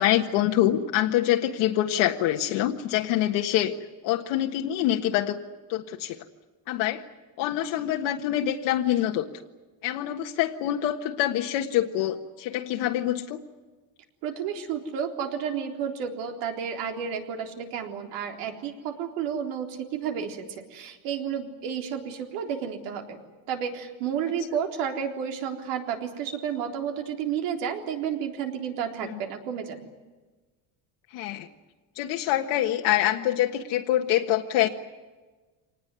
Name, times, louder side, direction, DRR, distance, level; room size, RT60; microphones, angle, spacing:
voice 1, 0.0-3.7 4.0-5.4 5.7-6.2 6.7-7.0 7.4-9.3 9.8-13.4 29.1-29.2 31.1-31.5 31.9-34.7, left 12 dB, 75° left, 2 dB, 1.6 m, -25 dB
voice 2, 14.2-23.2 23.5-29.8, right 7 dB, 85° right, 3 dB, 3.9 m, -31 dB
25.5 x 19.5 x 9.6 m, 1.3 s
cardioid pair, 145°, 42 cm